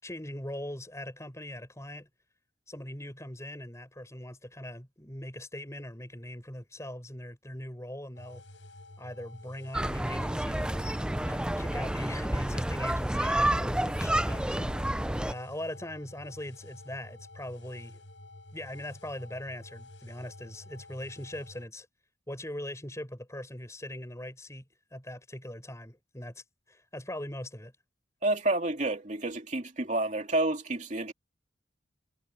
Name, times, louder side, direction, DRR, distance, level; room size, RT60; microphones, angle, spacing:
voice 1, 0.0-2.1 2.7-8.4 9.0-10.9 11.3-14.7 15.3-18.0 18.5-21.9 22.3-24.7 24.9-26.4 26.7-27.7, left 1 dB, 15° left, 6.1 m, -41 dB
sound 1, 8.2-21.7, left 1 dB, 80° left, 5.9 m, -50 dB
sound 2, 9.7-15.3, right 1 dB, 5° right, 0.4 m, -29 dB
voice 2, 28.2-31.1, right 2 dB, 40° right, 2.8 m, -29 dB
head